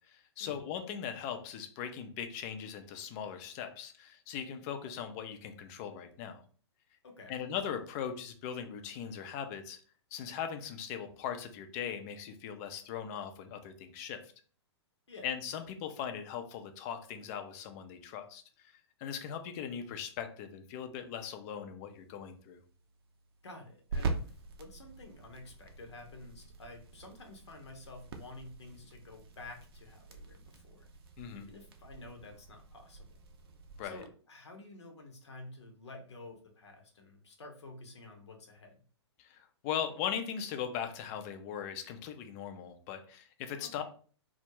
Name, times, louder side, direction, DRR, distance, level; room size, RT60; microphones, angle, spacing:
voice 1, 0.1-6.4 7.3-9.8 10.1-14.2 15.2-18.7 19.0-22.6 31.2-31.5 33.8-34.0 39.2-43.8, left 8 dB, 35° left, 7 dB, 0.4 m, -39 dB
voice 2, 7.0-7.4 15.1-15.3 23.4-30.9 31.3-33.1 33.8-38.7 43.6-43.8, left 2 dB, 75° left, 3 dB, 0.7 m, -50 dB
sound 1, 21.9-34.0, right 3 dB, 60° right, 0.5 m, -44 dB
2.3 x 2.0 x 3.0 m, 0.43 s
hypercardioid pair, 120°, 14 cm